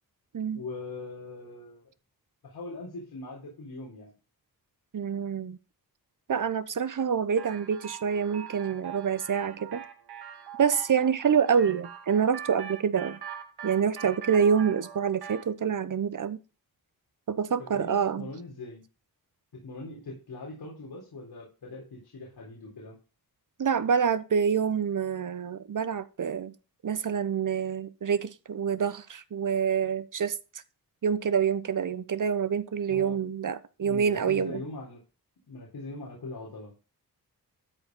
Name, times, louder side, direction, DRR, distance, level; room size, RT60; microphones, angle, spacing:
voice 1, 0.5-1.9 2.4-4.1 17.6-18.8 19.5-23.0 32.9-33.2 33.8-35.0 35.5-36.7, left 2 dB, 90° left, 4.1 m, -41 dB
voice 2, 4.9-5.6 6.3-9.8 10.6-13.2 13.6-16.4 17.3-18.3 23.6-26.5 26.8-30.4 31.0-34.6, right 7 dB, 55° right, 1.0 m, -27 dB
sound 1, 7.4-15.5, right 8 dB, 80° right, 1.7 m, -43 dB
13.0 x 4.8 x 5.4 m
wide cardioid pair, 100°, 38 cm